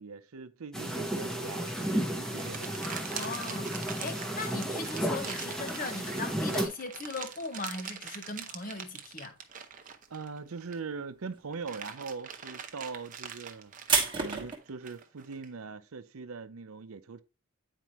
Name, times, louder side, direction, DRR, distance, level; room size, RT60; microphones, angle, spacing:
voice 1, 0.0-2.7 10.1-13.7 14.2-17.2, right 5 dB, 85° right, 0.6 m, -41 dB
sound 1, 0.7-6.7, right 1 dB, 5° left, 0.9 m, -33 dB
sound 2, 1.6-9.4 9.7-10.4 10.6-14.6, right 5 dB, 25° right, 1.3 m, -36 dB
sound 3, 1.7-10.9 11.3-15.5, right 7 dB, 40° right, 0.7 m, -44 dB
voice 2, 3.1-9.4, left 3 dB, 40° left, 1.0 m, -39 dB
9.2 x 4.5 x 3.0 m
head